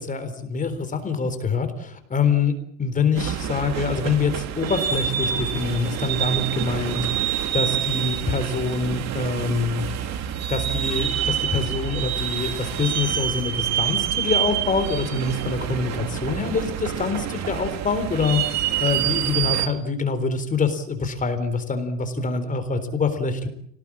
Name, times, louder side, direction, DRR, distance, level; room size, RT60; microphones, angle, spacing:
voice 1, 0.0-2.5 2.8-7.0 7.5-9.9 10.5-18.4 18.8-23.5, left 4 dB, 20° left, 9 dB, 3.9 m, -25 dB
sound 1, 3.2-19.7, right 10 dB, 45° right, 2.5 m, -27 dB
26.5 x 18.5 x 8.7 m, 0.71 s
supercardioid pair, 130°, 38 cm